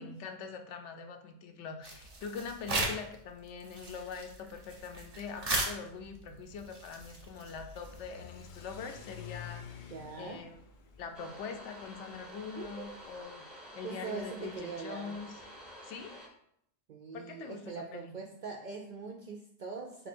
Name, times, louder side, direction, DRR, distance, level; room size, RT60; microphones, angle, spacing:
voice 1, 0.0-9.9 10.2-10.6 11.0-13.5 13.7-15.3 15.8-16.2 17.1-18.1, left 5 dB, 75° left, 5 dB, 0.9 m, -43 dB
sound 1, 1.8-3.2 3.5-8.1, right 2 dB, 35° right, 0.9 m, -37 dB
Car / Accelerating revving vroom, 6.5-13.2, left 7 dB, 60° left, 0.5 m, -51 dB
voice 2, 9.9-10.4 12.6-13.0 13.8-15.2 16.9-20.1, right 5 dB, 60° right, 0 dB, 0.5 m, -42 dB
sound 2, 11.1-16.3, equal, ahead, 0.6 m, -50 dB
4.0 x 2.9 x 4.2 m, 0.72 s
omnidirectional pair, 1.2 m